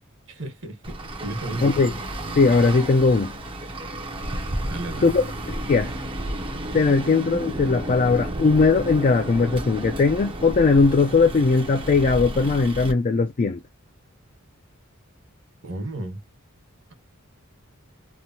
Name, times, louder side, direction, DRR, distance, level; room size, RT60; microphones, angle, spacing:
voice 1, 0.3-1.0 1.2-1.7 4.6-5.2 15.6-16.2, right 1 dB, 60° right, 1.2 m, -33 dB
Traffic noise roadway noise, 0.8-12.9, right 1 dB, 25° right, 0.6 m, -32 dB
voice 2, 1.6-1.9 2.3-3.3 5.0-5.9 6.7-13.6, left 4 dB, 40° left, 0.4 m, -19 dB
3.0 x 2.1 x 2.6 m
head